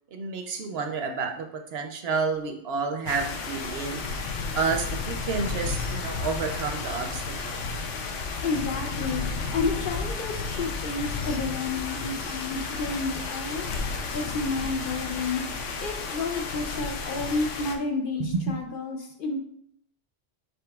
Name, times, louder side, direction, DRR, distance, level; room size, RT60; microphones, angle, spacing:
voice 1, 0.1-1.5 1.7-4.0 4.5-7.6 18.3-18.6, right 4 dB, 65° right, 5 dB, 0.7 m, -30 dB
sound 1, 3.1-17.8, left 4 dB, 85° left, 1.0 m, -32 dB
voice 2, 8.4-13.7 14.1-15.4 15.8-19.4, left 4 dB, 60° left, 3 dB, 0.6 m, -30 dB
5.2 x 4.3 x 2.3 m, 0.69 s
omnidirectional pair, 1.2 m